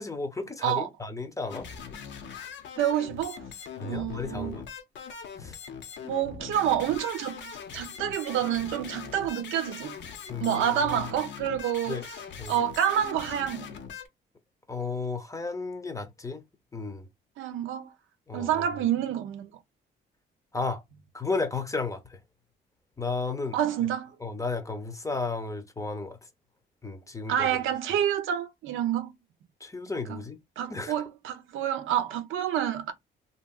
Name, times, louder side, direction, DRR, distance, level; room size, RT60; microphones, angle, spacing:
voice 1, 0.0-1.7 3.8-4.6 5.4-5.6 10.3-10.6 10.9-11.0 11.9-12.0 12.4-12.6 14.7-16.4 16.7-17.1 18.3-18.7 20.5-20.8 21.1-22.2 23.0-23.6 24.2-26.2 26.8-27.5 29.6-30.4 30.7-31.0, left 3 dB, 15° left, 0.7 m, -33 dB
sound 1, 1.5-14.1, left 7 dB, 65° left, 0.7 m, -41 dB
voice 2, 2.8-3.4 3.8-4.6 6.0-10.0 10.4-12.0 12.5-13.7 17.4-17.9 18.3-19.6 23.5-24.1 27.3-29.1 30.1-30.2 30.6-32.9, right 10 dB, 80° right, 0.6 m, -28 dB
2.8 x 2.8 x 2.3 m
cardioid pair, 90°, 20 cm